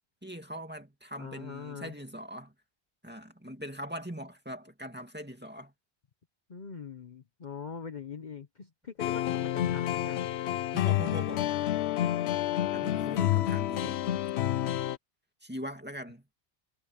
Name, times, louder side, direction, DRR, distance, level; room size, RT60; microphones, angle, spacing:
voice 1, 0.2-2.5 3.0-5.7 10.7-11.5 12.7-14.0 15.4-16.2, equal, 10° right, 2.4 m, -41 dB
voice 2, 1.2-1.9 6.5-10.3, left 6 dB, 45° left, 1.0 m, -42 dB
sound 1, 9.0-15.0, left 12 dB, 75° left, 0.8 m, -29 dB
omnidirectional pair, 1.1 m